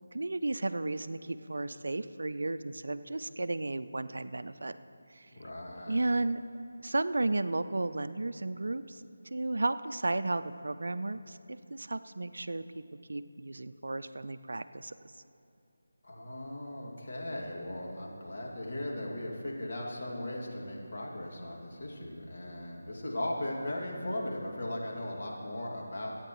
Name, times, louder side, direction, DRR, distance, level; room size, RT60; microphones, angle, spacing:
voice 1, 0.1-4.8 5.1-5.3 5.9-6.4 6.8-9.0 9.3-12.6 13.1-14.9, right 2 dB, 65° right, 12 dB, 0.4 m, -33 dB
voice 2, 5.3-6.0 16.0-26.1, left 1 dB, 50° left, -3 dB, 2.1 m, -38 dB
24.0 x 8.9 x 3.1 m, 2.6 s
figure-of-eight pair, 160°, 0 cm